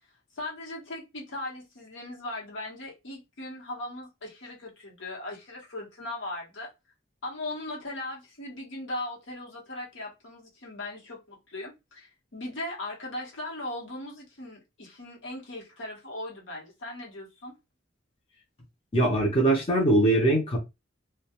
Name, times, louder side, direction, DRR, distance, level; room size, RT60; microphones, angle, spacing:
voice 1, 0.3-6.7 7.2-17.5, left 1 dB, 75° left, 1.0 m, -38 dB
voice 2, 18.9-20.6, right 1 dB, 30° left, 0.6 m, -22 dB
2.2 x 2.2 x 2.8 m
head